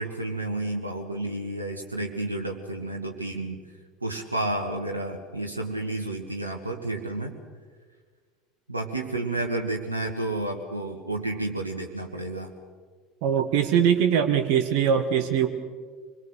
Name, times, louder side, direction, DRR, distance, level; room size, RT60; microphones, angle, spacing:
voice 1, 0.0-3.6 4.0-7.3 8.7-12.5, right 2 dB, 85° right, 2 dB, 1.7 m, -31 dB
voice 2, 13.2-15.5, right 8 dB, 55° right, 8 dB, 1.4 m, -22 dB
25.5 x 22.0 x 6.6 m, 1.5 s
figure-of-eight pair, 70°, 0 cm